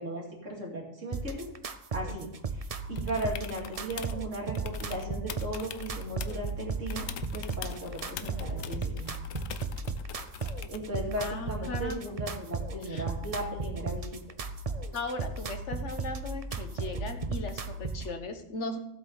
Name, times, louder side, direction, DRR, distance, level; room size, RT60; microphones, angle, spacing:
voice 1, 0.0-1.5 1.9-7.0 7.3-9.1 10.7-14.2, right 1 dB, 65° right, -1 dB, 3.0 m, -37 dB
sound 1, 1.1-18.1, right 4 dB, 40° right, 0.5 m, -35 dB
sound 2, 3.0-4.2 4.6-6.5 6.9-10.9 12.8-12.9, left 9 dB, 75° left, 1.1 m, -43 dB
voice 2, 11.2-12.2 12.8-13.0 14.9-18.8, left 3 dB, 60° left, 6 dB, 1.5 m, -38 dB
15.5 x 7.9 x 4.0 m, 0.78 s
omnidirectional pair, 1.4 m